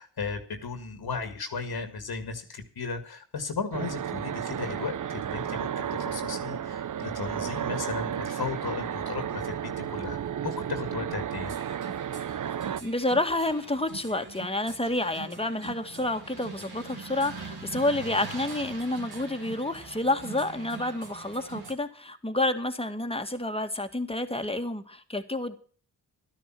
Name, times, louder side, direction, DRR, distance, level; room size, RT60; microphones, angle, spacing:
voice 1, 0.0-10.2 10.4-11.5, left 5 dB, 70° left, 8 dB, 2.1 m, -35 dB
sound 1, 3.7-12.8, right 9 dB, 50° right, 0.6 m, -33 dB
sound 2, 11.4-21.7, right 4 dB, 70° right, 2.4 m, -43 dB
voice 2, 12.8-25.6, left 2 dB, 15° left, 7 dB, 1.9 m, -29 dB
12.0 x 10.5 x 6.1 m, 0.44 s
cardioid pair, 50°, 39 cm